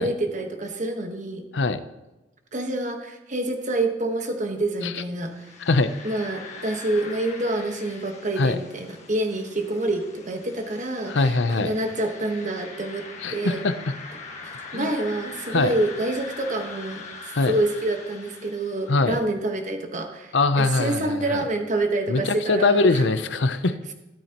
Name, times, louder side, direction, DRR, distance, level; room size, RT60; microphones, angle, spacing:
voice 1, 0.0-1.4 2.5-5.5 6.0-13.0 13.3-13.6 14.7-17.0 17.5-23.0, right 2 dB, 45° right, 5 dB, 1.4 m, -27 dB
sound 1, 5.2-19.2, left 4 dB, 40° left, 1.7 m, -42 dB
voice 2, 11.1-11.7 13.2-13.9 14.7-14.9 15.5-15.7 17.3-17.5 18.9-19.2 20.3-21.4 22.1-23.8, left 3 dB, 80° left, 11 dB, 0.7 m, -22 dB
13.0 x 13.0 x 3.0 m, 1.0 s
head